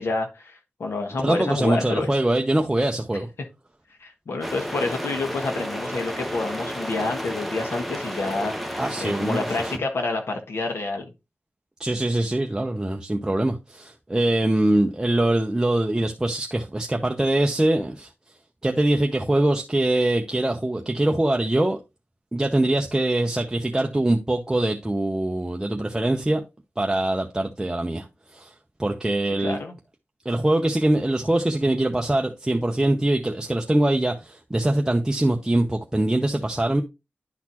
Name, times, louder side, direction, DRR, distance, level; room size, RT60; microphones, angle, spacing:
voice 1, 0.0-2.1 4.0-11.1 29.4-29.8, left 3 dB, 90° left, 1.4 m, -28 dB
voice 2, 1.2-3.3 8.7-9.7 11.8-18.1 18.6-21.8 22.3-26.4 26.8-28.5 28.8-29.6 30.2-36.8, right 1 dB, 15° right, 0.7 m, -23 dB
sound 1, 4.4-9.8, equal, ahead, 1.0 m, -32 dB
10.5 x 4.1 x 2.9 m
wide cardioid pair, 75°, 4 cm